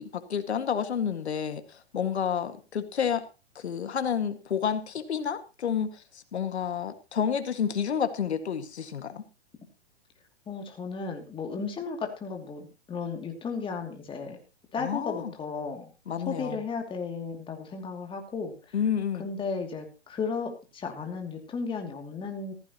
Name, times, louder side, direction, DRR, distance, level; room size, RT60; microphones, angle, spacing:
voice 1, 0.0-3.2 3.6-9.2 14.8-15.3 16.1-16.6 18.7-19.3, left 7 dB, 75° left, 9 dB, 2.0 m, -30 dB
voice 2, 10.5-14.4 14.7-15.9 16.3-18.7 19.2-22.5, left 5 dB, 15° left, 3 dB, 2.6 m, -34 dB
15.0 x 14.0 x 3.0 m, 0.30 s
hypercardioid pair, 125°, 33 cm